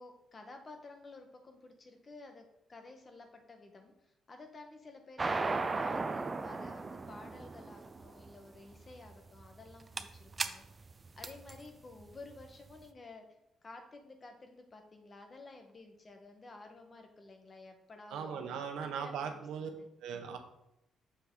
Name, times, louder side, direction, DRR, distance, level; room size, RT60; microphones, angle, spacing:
voice 1, 0.0-10.7 11.2-13.3 13.6-19.9, left 3 dB, 35° left, 4 dB, 1.4 m, -53 dB
sound 1, 5.2-12.7, right 3 dB, 30° right, 0.5 m, -37 dB
voice 2, 18.1-19.7 20.0-20.4, right 7 dB, 85° right, 5 dB, 1.0 m, -39 dB
6.9 x 5.7 x 3.9 m, 0.83 s
cardioid pair, 90°, 0 cm